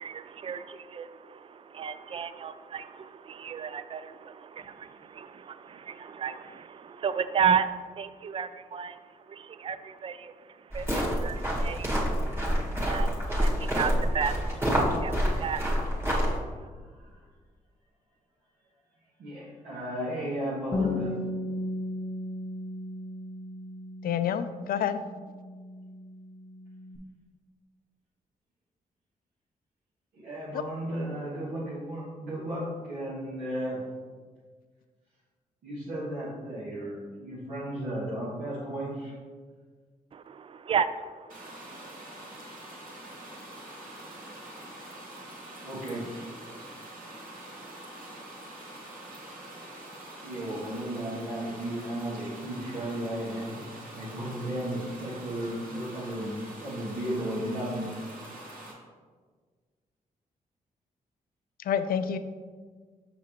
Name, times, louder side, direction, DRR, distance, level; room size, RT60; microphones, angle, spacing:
voice 1, 0.0-16.7 40.1-42.1, right 7 dB, 35° right, 13 dB, 0.3 m, -34 dB
sound 1, 10.7-16.4, equal, 15° right, 1.7 m, -27 dB
voice 2, 16.1-17.3 19.2-21.2 30.1-33.8 35.6-39.1 45.6-46.2 50.2-53.6 53.9-57.9, right 1 dB, 90° right, -10 dB, 1.6 m, -35 dB
voice 3, 20.7-21.3 24.0-25.0 30.5-30.6 61.7-62.2, left 8 dB, 75° left, 11 dB, 0.4 m, -29 dB
Bass guitar, 20.7-27.0, left 1 dB, 30° left, 0.6 m, -36 dB
sound 2, 41.3-58.7, right 1 dB, 65° right, 1.8 m, -45 dB
5.9 x 5.9 x 3.0 m, 1.5 s
cardioid pair, 70°, 15 cm